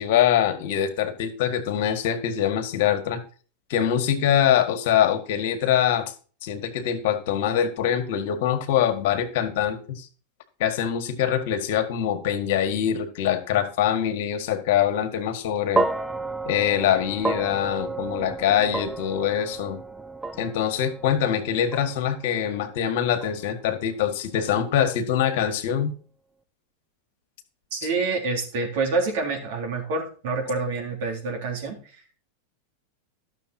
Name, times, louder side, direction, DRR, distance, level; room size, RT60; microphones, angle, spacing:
voice 1, 0.0-3.2 3.7-6.1 6.4-10.1 10.6-15.9 16.5-19.8 20.4-25.9, left 9 dB, 65° left, 6 dB, 1.8 m, -24 dB
sound 1, 15.7-24.1, right 3 dB, 10° right, 0.6 m, -32 dB
voice 2, 27.7-32.0, right 3 dB, 65° right, 3 dB, 3.6 m, -27 dB
12.0 x 6.9 x 4.4 m, 0.39 s
hypercardioid pair, 100°, 0 cm